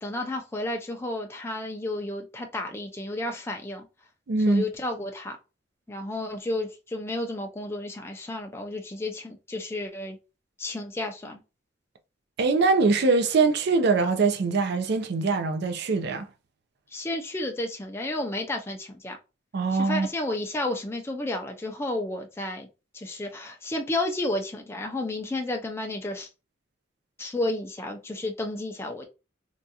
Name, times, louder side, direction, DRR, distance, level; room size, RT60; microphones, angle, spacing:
voice 1, 0.0-3.9 4.5-5.4 5.9-10.2 10.6-11.4 16.9-19.2 19.7-22.7 22.9-26.3 27.2-29.1, left 1 dB, 15° left, 0.3 m, -32 dB
voice 2, 4.3-4.6 12.4-16.3 19.5-20.1, right 4 dB, 55° right, 0.4 m, -23 dB
3.6 x 2.3 x 2.7 m
head